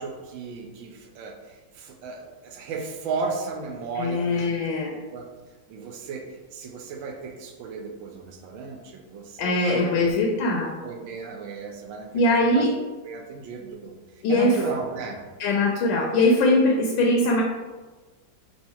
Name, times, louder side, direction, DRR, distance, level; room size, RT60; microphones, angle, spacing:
voice 1, 0.0-4.5 4.9-5.2 5.7-10.2 10.8-12.7 13.0-15.2, right 4 dB, 80° right, 2 dB, 1.4 m, -35 dB
voice 2, 4.0-4.9 9.4-10.7 12.1-12.7 14.2-14.5 15.4-17.4, left 2 dB, 85° left, 0 dB, 1.4 m, -21 dB
3.6 x 2.7 x 4.3 m, 1.3 s
omnidirectional pair, 2.1 m